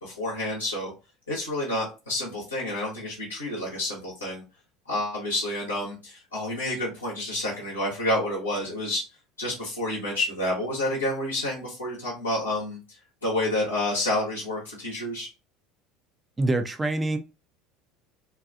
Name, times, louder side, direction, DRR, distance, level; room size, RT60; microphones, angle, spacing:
voice 1, 0.0-0.9 1.3-4.4 4.9-9.0 9.4-12.8 13.2-15.3, left 1 dB, 90° left, -6 dB, 0.9 m, -29 dB
voice 2, 16.4-17.2, right 2 dB, 20° right, 7 dB, 0.5 m, -25 dB
2.6 x 2.3 x 2.4 m, 0.29 s
figure-of-eight pair, 70°, 0 cm